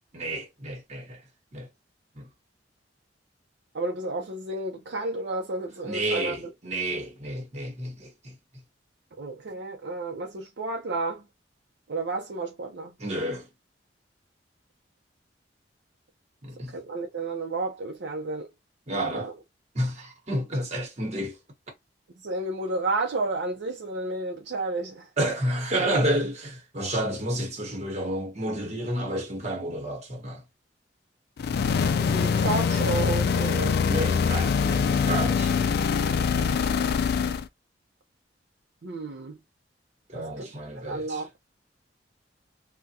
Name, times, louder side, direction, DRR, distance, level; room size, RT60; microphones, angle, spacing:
voice 1, 0.1-1.2 1.5-1.7 2.2-2.3 5.8-8.4 13.0-13.5 16.4-16.8 18.9-19.3 19.7-21.4 25.2-30.4 33.8-35.5 36.3-36.5 40.1-41.2, right 1 dB, 40° right, 1.1 m, -30 dB
voice 2, 3.7-6.5 9.2-11.2 11.9-12.9 16.7-18.5 19.1-19.3 22.2-25.1 32.0-33.8 38.8-39.4 40.1-40.5 40.8-41.3, right 2 dB, 70° right, 0.6 m, -31 dB
sound 1, 31.4-37.5, left 6 dB, 60° left, 0.3 m, -24 dB
3.5 x 2.2 x 2.7 m
head